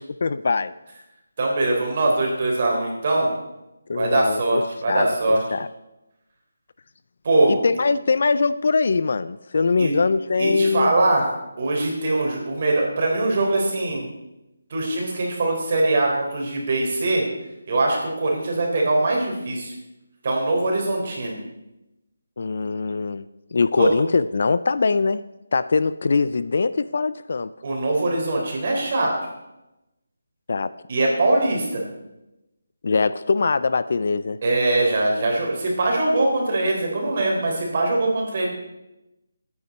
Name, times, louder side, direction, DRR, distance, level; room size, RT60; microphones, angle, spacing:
voice 1, 0.2-0.7 3.9-4.6 4.9-5.1 5.5-5.7 7.5-10.9 22.4-23.2 23.5-25.2 25.5-27.5 30.5-30.7 32.8-34.4, left 4 dB, 45° left, 14 dB, 0.4 m, -22 dB
voice 2, 1.4-3.3 3.9-5.4 7.2-7.6 9.8-9.9 10.4-11.3 11.6-14.1 14.7-17.2 17.7-19.7 20.2-21.4 23.8-23.9 27.6-29.2 30.9-31.8 34.4-38.5, right 2 dB, 35° right, -1 dB, 3.7 m, -22 dB
18.0 x 9.5 x 4.2 m, 0.94 s
hypercardioid pair, 175°, 0 cm